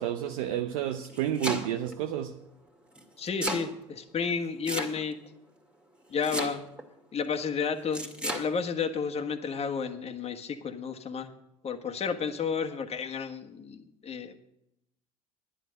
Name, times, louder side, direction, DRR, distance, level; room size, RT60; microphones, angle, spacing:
voice 1, 0.0-2.3, right 11 dB, 75° right, 0.7 m, -30 dB
Domestic sounds home sounds, 0.9-1.9 2.9-3.7 4.6-5.3 6.2-6.8 7.9-8.5, right 1 dB, 5° right, 2.0 m, -33 dB
voice 2, 3.2-5.2 6.1-6.6 7.1-11.3 11.6-14.4, left 6 dB, 35° left, 1.5 m, -32 dB
11.5 x 10.0 x 6.4 m
hypercardioid pair, 75°, 18 cm